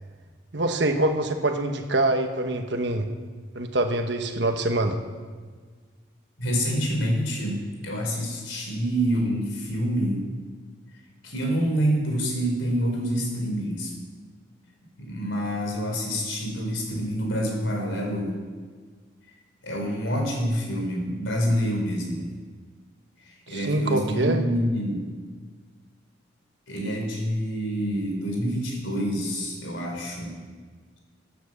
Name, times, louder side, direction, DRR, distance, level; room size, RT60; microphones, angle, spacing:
voice 1, 0.5-3.1 3.5-5.0 23.5-24.4, right 2 dB, 65° right, 5 dB, 1.2 m, -24 dB
voice 2, 6.4-10.2 11.2-13.9 15.0-18.3 19.6-22.3 23.2-25.0 26.7-30.4, equal, 85° left, 1 dB, 3.9 m, -27 dB
15.5 x 9.3 x 6.6 m, 1.5 s
head